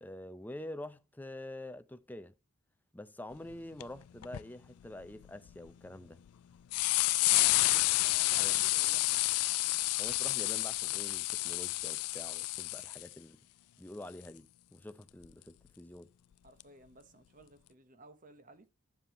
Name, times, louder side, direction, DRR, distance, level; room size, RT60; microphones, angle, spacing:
voice 1, 0.0-2.3 2.9-6.2 8.4-8.6 10.0-13.4 13.8-16.1, left 1 dB, 10° left, 0.5 m, -46 dB
sound 1, 3.5-3.6 3.8-3.9 4.2-4.4 5.0-5.7 6.3-6.4 6.7-13.1 15.2-15.3 16.6-16.7, left 20 dB, 85° left, 0.4 m, -30 dB
voice 2, 7.3-7.6 8.0-9.0 16.4-18.7, right 2 dB, 35° right, 1.2 m, -55 dB
9.9 x 7.1 x 3.0 m
head